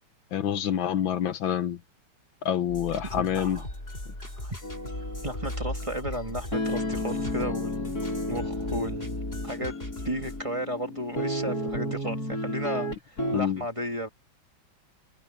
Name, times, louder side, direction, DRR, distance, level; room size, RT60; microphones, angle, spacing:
voice 1, 0.3-1.8 2.5-3.6 13.3-13.6, left 10 dB, 75° left, 1.8 m, -27 dB
sound 1, 2.7-10.4, left 1 dB, 30° left, 7.3 m, -38 dB
voice 2, 3.2-3.7 4.4-4.6 5.2-8.0 8.3-9.2 9.4-9.7 10.0-14.1, equal, 15° right, 2.1 m, -34 dB
sound 2, 4.6-13.4, left 1 dB, 45° left, 5.6 m, -32 dB
omnidirectional pair, 2.2 m